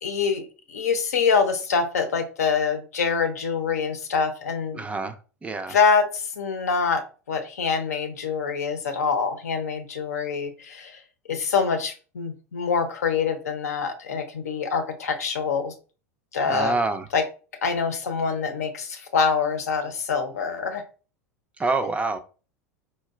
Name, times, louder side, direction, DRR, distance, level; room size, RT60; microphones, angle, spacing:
voice 1, 0.0-4.8 5.7-11.0 11.3-15.7 16.3-16.7 17.1-17.2 17.6-20.8, left 5 dB, 75° left, 6 dB, 0.6 m, -25 dB
voice 2, 4.7-5.2 5.4-5.8 16.5-17.1 21.6-22.2, right 3 dB, 15° right, 9 dB, 0.3 m, -26 dB
4.1 x 2.2 x 2.3 m, 0.36 s
figure-of-eight pair, 85°, 8 cm